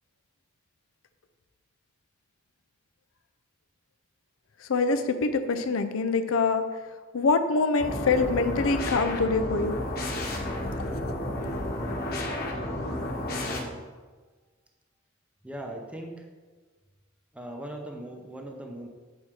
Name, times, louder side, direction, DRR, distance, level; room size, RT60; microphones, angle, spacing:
voice 1, 4.7-6.6 7.1-9.8, left 4 dB, 75° left, 8 dB, 0.5 m, -24 dB
sound 1, 7.8-13.6, left 1 dB, 50° left, 1.3 m, -31 dB
voice 2, 13.4-13.8 15.4-16.3 17.3-18.9, right 1 dB, 5° right, 2 dB, 0.7 m, -39 dB
7.4 x 4.4 x 4.8 m, 1.4 s
head